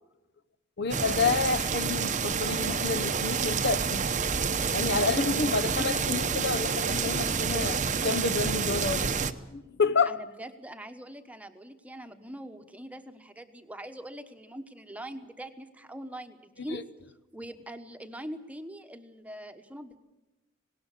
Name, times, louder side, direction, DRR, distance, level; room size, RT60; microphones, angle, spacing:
voice 1, 0.8-4.0 4.7-9.1 9.5-10.2 16.7-16.8, left 4 dB, 55° left, 0.9 m, -29 dB
sound 1, 0.9-9.3, right 5 dB, 35° right, 0.8 m, -28 dB
voice 2, 5.0-5.4 10.1-16.8 17.3-20.0, right 1 dB, 5° right, 1.1 m, -43 dB
19.0 x 18.5 x 8.4 m
head